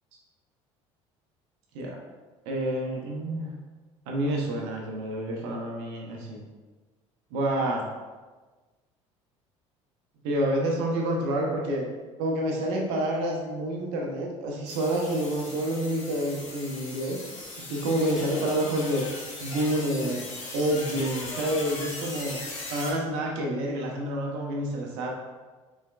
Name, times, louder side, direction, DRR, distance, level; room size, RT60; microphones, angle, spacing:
voice 1, 2.5-3.5 4.1-6.4 7.3-7.8 10.2-11.9 12.2-17.2 17.6-19.0 19.4-20.3 20.5-22.4 22.7-25.1, right 1 dB, 70° right, 0 dB, 0.7 m, -28 dB
sound 1, 14.7-22.9, left 2 dB, 85° left, 1.0 m, -39 dB
4.3 x 3.4 x 2.3 m, 1.3 s
hypercardioid pair, 65°, 16 cm